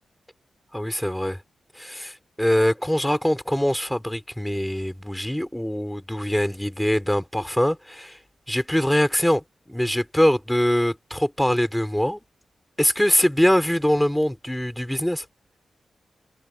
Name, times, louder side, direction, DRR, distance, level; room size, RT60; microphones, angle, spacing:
voice 1, 0.7-1.4 1.8-8.2 8.5-12.2 12.8-15.2, equal, 5° left, 3.7 m, -23 dB
cardioid pair, 80°, 0 cm